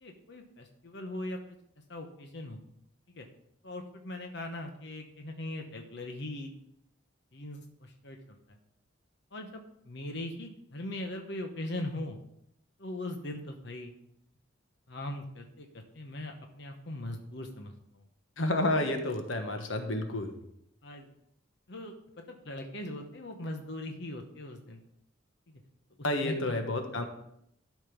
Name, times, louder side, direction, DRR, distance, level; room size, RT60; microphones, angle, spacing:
voice 1, 0.0-1.6 1.9-2.6 3.1-3.3 3.6-6.5 7.3-8.6 9.3-12.2 12.8-13.9 14.9-18.0 20.8-21.1 21.7-24.8 25.5-25.6 26.2-26.6, left 1 dB, 60° left, 4 dB, 1.1 m, -40 dB
voice 2, 18.4-20.3 26.0-27.0, left 1 dB, 90° left, 6 dB, 1.3 m, -30 dB
12.5 x 5.2 x 5.3 m, 0.75 s
head